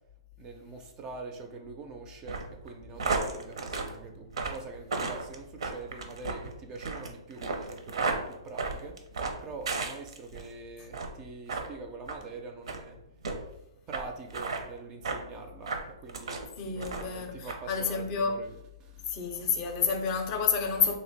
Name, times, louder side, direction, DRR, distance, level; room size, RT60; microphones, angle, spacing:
voice 1, 0.4-9.0 9.4-13.0 13.9-16.4 16.7-19.1 19.4-19.6, right 3 dB, 25° right, 0.4 m, -44 dB
sound 1, 2.2-10.5 10.9-11.2 11.5-11.7 12.1-12.2 12.6-12.8 13.2-13.4 13.9-14.0 14.3-14.6 15.0-15.2 15.6-16.4 16.8-17.2 17.5-17.6, right 4 dB, 75° right, 0.6 m, -33 dB
voice 2, 16.6-18.4 19.1-21.0, left 6 dB, 35° left, 0.5 m, -29 dB
3.0 x 2.1 x 4.0 m
hypercardioid pair, 140°, 3 cm